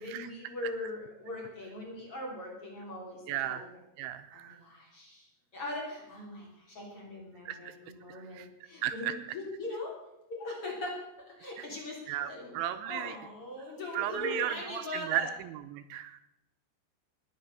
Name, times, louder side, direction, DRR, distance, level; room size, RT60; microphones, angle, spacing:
voice 1, 0.0-3.7 4.3-10.0 10.3-11.0 11.3-12.6 12.8-15.3, left 2 dB, 30° left, -2 dB, 3.8 m, -40 dB
voice 2, 3.3-3.7 4.0-4.6 7.5-7.7 8.1-8.5 8.8-9.2 11.6-11.7 12.1-13.1 13.9-16.2, right 12 dB, 85° right, 10 dB, 3.0 m, -35 dB
20.0 x 7.7 x 6.8 m, 0.88 s
omnidirectional pair, 5.4 m